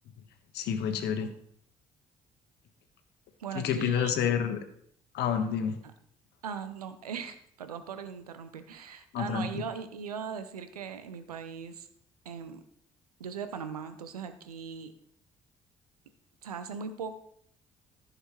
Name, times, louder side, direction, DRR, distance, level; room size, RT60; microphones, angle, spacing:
voice 1, 0.5-1.3 3.5-4.6 5.1-5.8 9.1-9.7, left 8 dB, 65° left, 7 dB, 1.3 m, -29 dB
voice 2, 3.4-4.1 5.8-5.9 6.4-11.9 12.2-12.6 13.2-14.9 16.4-17.2, right 6 dB, 85° right, 10 dB, 0.7 m, -39 dB
14.5 x 6.7 x 3.1 m, 0.67 s
figure-of-eight pair, 45°, 19 cm